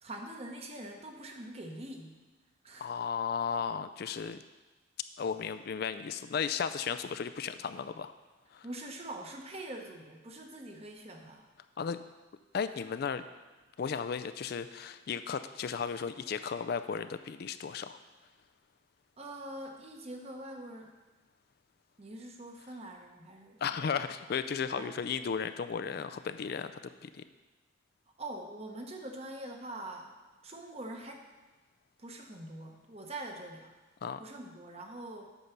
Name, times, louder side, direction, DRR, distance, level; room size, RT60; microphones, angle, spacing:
voice 1, 0.0-2.2 2.6-2.9 8.6-11.4 19.2-20.9 22.0-23.9 24.7-24.9 28.2-30.1 30.4-31.3 32.0-33.7 34.2-35.3, right 1 dB, 30° right, 2 dB, 1.0 m, -44 dB
voice 2, 2.8-4.4 5.2-8.1 8.5-8.7 11.8-12.0 12.5-13.2 13.8-18.0 23.6-26.7 27.0-27.2 34.0-34.2, left 6 dB, 55° left, 11 dB, 0.3 m, -35 dB
8.3 x 5.5 x 5.9 m, 1.2 s
head